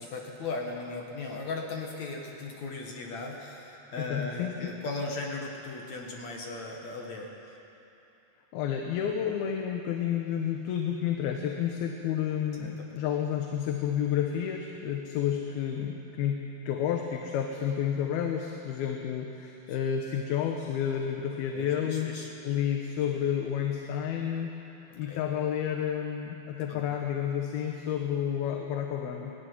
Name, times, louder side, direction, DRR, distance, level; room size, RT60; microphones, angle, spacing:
voice 1, 0.0-7.6 12.6-12.9 19.7-19.8 21.5-22.3 24.9-25.2 26.7-26.8, left 3 dB, 55° left, 0 dB, 2.6 m, -37 dB
voice 2, 4.1-4.7 8.5-22.1 22.4-24.5 25.0-29.3, left 9 dB, 85° left, 2 dB, 3.0 m, -30 dB
19.5 x 15.0 x 9.8 m, 3.0 s
omnidirectional pair, 4.3 m